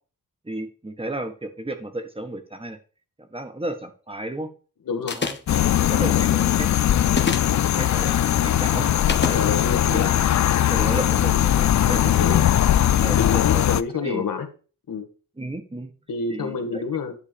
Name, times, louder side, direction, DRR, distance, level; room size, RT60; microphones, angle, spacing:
voice 1, 0.4-2.8 3.3-4.5 5.1-6.7 7.0-7.2 7.8-8.9 9.2-9.4 9.9-10.1 10.7-12.4 13.0-13.6 13.9-14.2 15.4-15.9 16.3-16.8, right 1 dB, 15° right, 7 dB, 1.4 m, -33 dB
voice 2, 4.8-5.2 9.3-10.1 12.2-12.4 13.2-14.5 14.9-15.1 16.1-17.2, left 5 dB, 70° left, 6 dB, 1.9 m, -27 dB
sound 1, 5.1-5.6 7.1-7.6 9.1-9.4, left 4 dB, 30° left, 1.1 m, -26 dB
sound 2, 5.5-13.8, left 11 dB, 55° left, 0.5 m, -20 dB
10.5 x 3.8 x 6.9 m, 0.37 s
wide cardioid pair, 105°, 34 cm